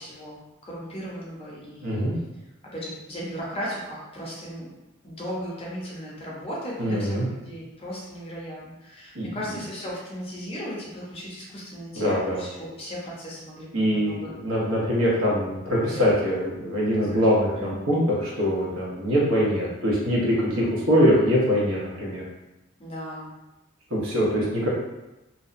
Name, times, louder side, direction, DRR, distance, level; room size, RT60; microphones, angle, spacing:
voice 1, 0.0-2.1 2.7-4.7 5.0-14.3 15.8-16.0 16.9-17.3 17.6-17.8 22.8-23.3, equal, 25° left, -5 dB, 0.5 m, -36 dB
voice 2, 1.8-2.2 6.8-7.2 9.1-9.3 11.9-12.4 13.7-22.2 23.9-24.7, equal, 85° right, -5 dB, 0.8 m, -23 dB
2.6 x 2.1 x 2.5 m, 0.99 s
head